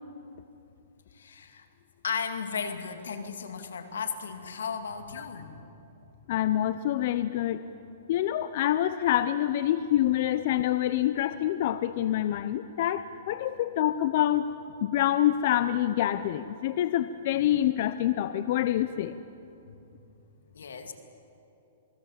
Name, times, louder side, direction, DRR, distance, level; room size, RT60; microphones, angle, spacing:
voice 1, 1.1-1.7 2.0-5.7 19.7-19.8 20.5-20.9, left 6 dB, 90° left, 7 dB, 2.5 m, -35 dB
voice 2, 6.3-7.6 8.1-14.5 14.8-19.2, left 12 dB, 50° left, 13 dB, 0.7 m, -26 dB
28.0 x 20.5 x 7.4 m, 2.8 s
hypercardioid pair, 145°, 0 cm